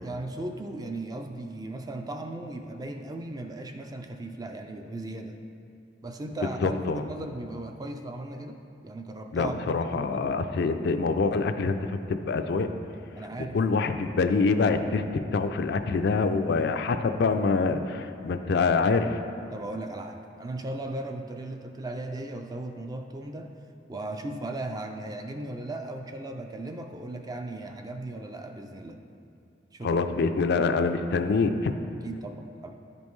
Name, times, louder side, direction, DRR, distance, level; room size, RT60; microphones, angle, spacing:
voice 1, 0.0-5.5 6.0-8.6 8.8-10.3 12.9-13.6 19.5-23.5 23.9-29.0 29.7-30.0 32.0-32.7, right 2 dB, 20° right, 5 dB, 0.4 m, -37 dB
voice 2, 6.6-7.0 9.3-12.7 13.5-19.2 29.8-31.7, left 4 dB, 60° left, 8 dB, 0.4 m, -25 dB
10.5 x 5.2 x 3.1 m, 2.6 s
head